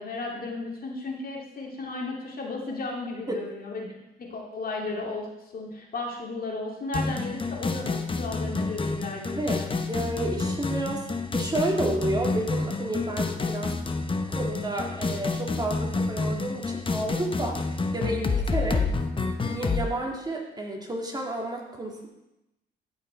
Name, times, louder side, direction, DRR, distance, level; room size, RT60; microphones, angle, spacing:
voice 1, 0.0-3.9 4.2-5.3 5.5-9.7, left 3 dB, 45° left, -1 dB, 2.4 m, -34 dB
sound 1, 6.9-19.9, left 3 dB, 25° left, 0.9 m, -29 dB
voice 2, 9.3-11.1 11.3-13.8 14.3-18.8 19.4-22.1, right 1 dB, 20° right, 0 dB, 2.1 m, -31 dB
15.0 x 5.6 x 4.5 m, 0.91 s
cardioid pair, 90°, 20 cm